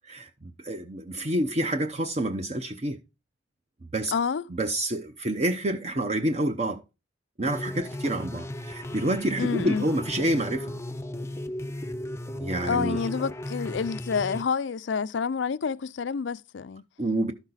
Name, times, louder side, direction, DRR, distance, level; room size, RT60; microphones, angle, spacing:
voice 1, 0.0-3.0 3.9-4.1 4.5-6.8 7.4-10.7 12.4-13.2 17.0-17.3, right 1 dB, 35° right, 0.7 m, -28 dB
voice 2, 4.1-4.4 9.4-9.9 12.6-16.8, left 5 dB, 70° left, 0.4 m, -28 dB
sound 1, 7.4-14.4, left 1 dB, 15° left, 0.6 m, -35 dB
12.5 x 6.1 x 4.0 m
head